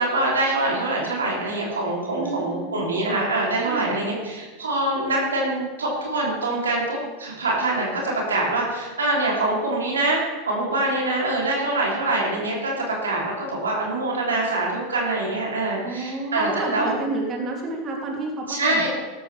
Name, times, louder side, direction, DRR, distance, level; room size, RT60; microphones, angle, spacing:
voice 1, 0.0-10.2 10.5-16.9 18.5-18.9, right 2 dB, 85° right, -2 dB, 3.1 m, -24 dB
voice 2, 2.1-2.9 3.7-4.0 15.8-18.9, right 3 dB, 35° right, 0 dB, 2.8 m, -30 dB
14.0 x 12.5 x 3.4 m, 1.3 s
hypercardioid pair, 90°, 0 cm